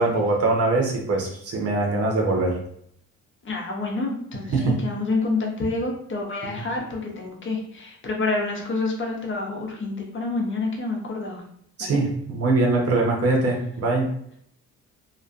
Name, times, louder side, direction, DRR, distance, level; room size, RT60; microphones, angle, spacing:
voice 1, 0.0-2.6 4.5-4.7 11.8-14.1, right 2 dB, 50° right, 0 dB, 0.8 m, -22 dB
voice 2, 3.4-11.4 11.8-12.0, left 3 dB, 40° left, 0 dB, 0.6 m, -28 dB
2.5 x 2.2 x 2.4 m, 0.68 s
cardioid pair, 90°, 30 cm